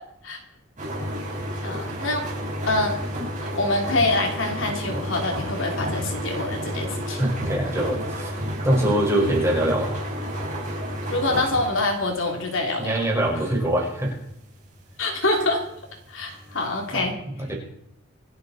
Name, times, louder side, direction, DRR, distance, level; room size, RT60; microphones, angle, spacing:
sound 1, 0.8-16.9, equal, 35° right, 5.2 m, -31 dB
voice 1, 1.6-2.3 2.6-3.0 3.5-7.2 11.1-12.9 15.0-15.6 16.1-17.1, left 2 dB, 70° left, 2 dB, 3.3 m, -25 dB
voice 2, 7.2-10.0 12.8-14.2 16.9-17.0 17.5-17.6, right 1 dB, 15° right, -3 dB, 5.5 m, -23 dB
26.5 x 9.7 x 4.3 m, 0.75 s
head